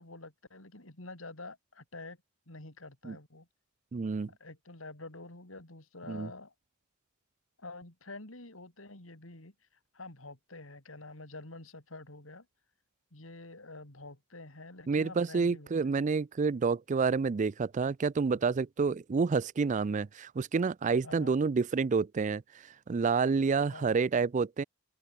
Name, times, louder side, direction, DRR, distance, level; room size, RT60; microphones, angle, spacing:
voice 1, 0.0-2.2 2.5-3.5 4.4-6.5 7.6-9.5 9.9-12.5 13.1-16.0 21.0-21.3 23.7-24.0, left 2 dB, 85° left, 4.2 m, -47 dB
voice 2, 3.9-4.3 6.1-6.3 14.9-22.4 22.9-24.6, right 5 dB, 35° right, 0.4 m, -29 dB
open air
head